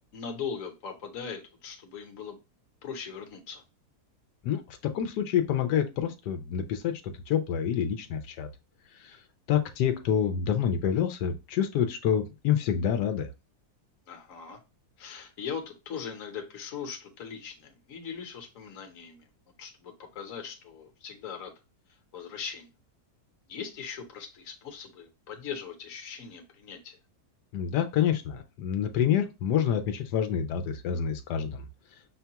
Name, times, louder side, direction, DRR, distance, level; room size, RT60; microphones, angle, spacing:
voice 1, 0.1-2.4 2.8-3.6 14.1-14.6 15.0-19.3 19.6-21.5 22.1-22.7 23.5-27.0, left 6 dB, 60° left, 4 dB, 1.2 m, -40 dB
voice 2, 4.4-8.5 9.0-9.2 9.5-13.3 27.5-31.6, left 9 dB, 90° left, 7 dB, 1.2 m, -27 dB
6.1 x 2.2 x 2.8 m, 0.28 s
omnidirectional pair, 1.7 m